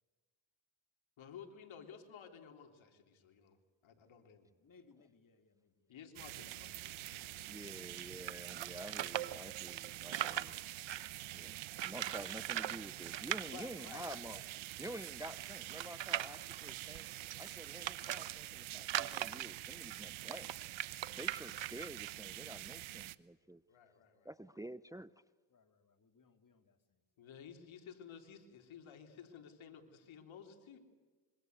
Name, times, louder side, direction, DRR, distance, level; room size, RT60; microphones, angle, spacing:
voice 1, 1.2-3.6 3.8-4.5 5.9-7.8 13.5-14.4 23.7-24.3 27.2-30.8, left 7 dB, 75° left, 5 dB, 3.8 m, -54 dB
voice 2, 4.6-6.0 25.5-26.8 27.2-27.3, left 4 dB, 45° left, 7 dB, 3.2 m, -66 dB
sound 1, 6.2-23.2, right 16 dB, 90° right, 1.0 m, -47 dB
voice 3, 7.5-10.6 11.3-14.4 14.8-17.1 17.4-20.5 21.1-23.6 24.2-25.1, right 1 dB, 5° right, 15 dB, 0.8 m, -49 dB
sound 2, 8.3-11.2 11.8-12.8 13.0-13.4 14.1-14.2 14.4-14.5 15.0-18.3 18.8-22.1, right 12 dB, 65° right, 1.2 m, -40 dB
26.0 x 24.0 x 8.1 m, 1.4 s
cardioid pair, 70°, 47 cm